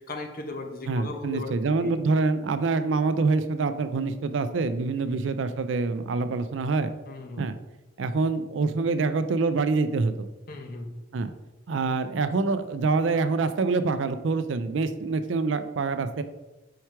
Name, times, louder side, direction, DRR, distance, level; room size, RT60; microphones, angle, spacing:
voice 1, 0.1-1.5 1.8-1.9 5.0-5.1 7.1-7.5 10.5-10.9, left 3 dB, 50° left, 4 dB, 0.9 m, -37 dB
voice 2, 0.9-6.9 7.4-7.5 8.0-10.3 11.1-11.3 11.7-16.2, right 3 dB, 80° right, 11 dB, 0.4 m, -26 dB
4.7 x 4.5 x 4.6 m, 1.1 s
head